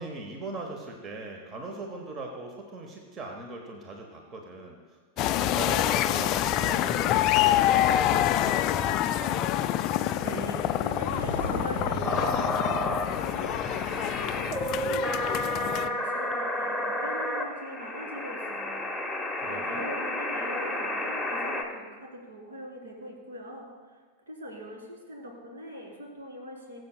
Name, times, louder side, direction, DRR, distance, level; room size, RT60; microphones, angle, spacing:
voice 1, 0.0-9.5 19.4-19.9, right 2 dB, 30° right, 2 dB, 1.1 m, -40 dB
sound 1, 5.2-15.9, left 12 dB, 35° left, 0.3 m, -26 dB
sound 2, 8.4-14.7, equal, 85° right, 1.5 m, -42 dB
voice 2, 10.2-18.9 19.4-24.0 24.3-26.8, equal, 70° right, 0 dB, 2.1 m, -41 dB
sound 3, 12.0-21.6, left 1 dB, ahead, 1.0 m, -31 dB
19.5 x 7.7 x 2.2 m, 1.4 s
figure-of-eight pair, 90°, 0 cm